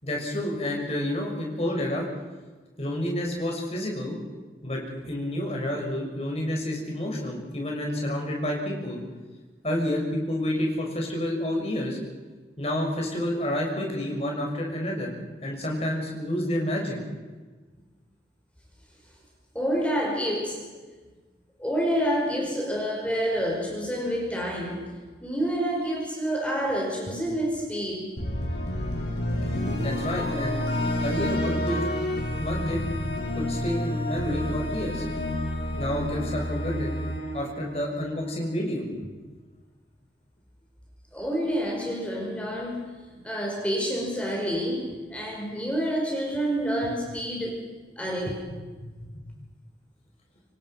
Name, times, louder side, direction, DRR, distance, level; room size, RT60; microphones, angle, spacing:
voice 1, 0.0-2.1 2.8-4.1 4.6-9.0 9.6-12.0 12.6-15.1 15.4-17.0 29.7-30.6 31.0-31.8 32.4-32.8 33.3-35.0 35.8-37.0 37.3-39.1 49.0-49.1, left 1 dB, 35° left, 0 dB, 6.4 m, -29 dB
voice 2, 19.5-20.7 21.6-25.0 25.2-28.1 41.1-47.6 48.0-48.4, equal, 5° left, -2 dB, 5.5 m, -28 dB
sound 1, 28.2-38.3, left 1 dB, 70° left, 6.7 m, -29 dB
27.0 x 24.0 x 6.0 m, 1.3 s
head